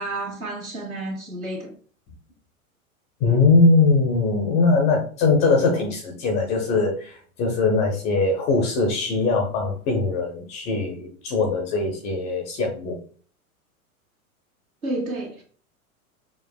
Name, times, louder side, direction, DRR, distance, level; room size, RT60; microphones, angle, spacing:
voice 1, 0.0-1.7 14.8-15.4, right 2 dB, 75° right, 1.6 m, -30 dB
voice 2, 3.2-13.0, left 3 dB, 15° left, 0.3 m, -21 dB
6.0 x 2.4 x 2.2 m
figure-of-eight pair, 95°, 43 cm